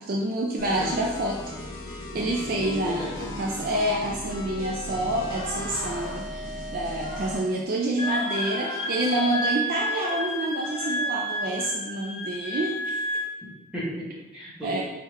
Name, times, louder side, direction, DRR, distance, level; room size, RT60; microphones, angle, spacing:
voice 1, 0.0-1.4 1.9-13.1 14.6-14.8, right 1 dB, 45° right, -1 dB, 0.3 m, -28 dB
sound 1, 0.6-7.5, left 1 dB, 65° left, 0.9 m, -37 dB
voice 2, 2.1-3.2 13.4-14.8, equal, 5° right, -10 dB, 1.4 m, -35 dB
sound 2, 5.3-6.2 6.9-7.5 7.9-9.5 9.9-10.2 10.6-11.0 11.4-11.7, left 1 dB, 80° left, 1.5 m, -39 dB
Wind instrument woodwind instrument, 8.0-13.3, equal, 30° left, 0.5 m, -30 dB
4.5 x 3.7 x 3.0 m, 1.1 s
head